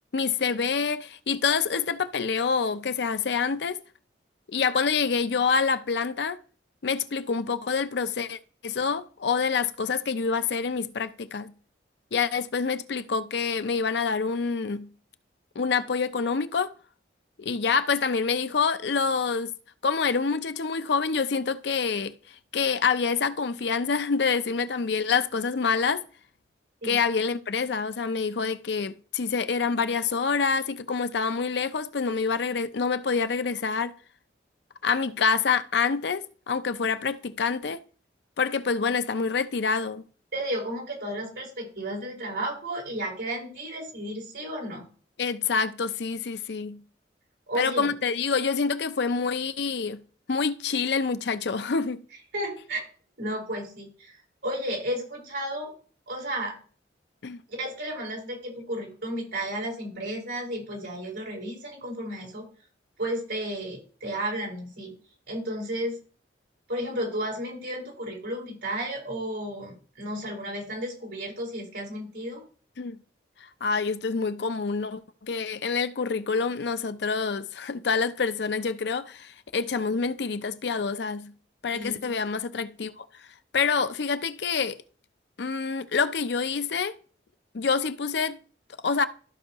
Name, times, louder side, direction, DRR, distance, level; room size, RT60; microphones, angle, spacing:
voice 1, 0.1-3.8 4.5-6.4 6.8-11.5 12.1-14.9 15.6-16.7 17.4-19.5 19.8-26.0 26.8-33.9 34.8-37.8 38.4-40.0 45.2-46.8 47.6-50.0 50.3-52.0 57.2-57.4 72.8-73.0 73.4-81.3 81.6-83.1 83.5-84.8 85.4-86.9 87.5-88.4 88.8-89.1, left 5 dB, 65° left, 0.5 m, -27 dB
voice 2, 40.3-44.9 47.5-47.9 52.3-52.8 53.2-55.7 56.1-56.6 57.5-62.5 63.0-64.9 65.3-66.0 66.7-72.4 81.7-82.2, right 1 dB, 70° right, 5.1 m, -33 dB
14.0 x 5.5 x 3.0 m
head